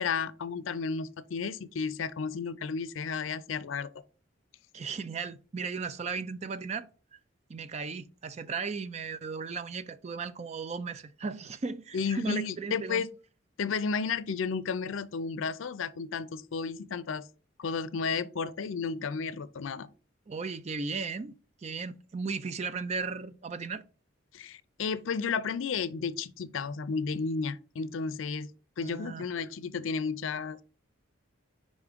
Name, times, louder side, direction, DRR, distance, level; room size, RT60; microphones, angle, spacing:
voice 1, 0.0-3.9 11.9-13.1 13.6-17.2 17.6-19.9 24.3-28.5 28.8-30.6, left 5 dB, 75° left, 0.5 m, -32 dB
voice 2, 4.7-7.2 7.5-13.1 20.3-21.4 21.6-23.8 28.8-29.3, right 4 dB, 35° right, 0.4 m, -36 dB
5.1 x 3.6 x 5.0 m
head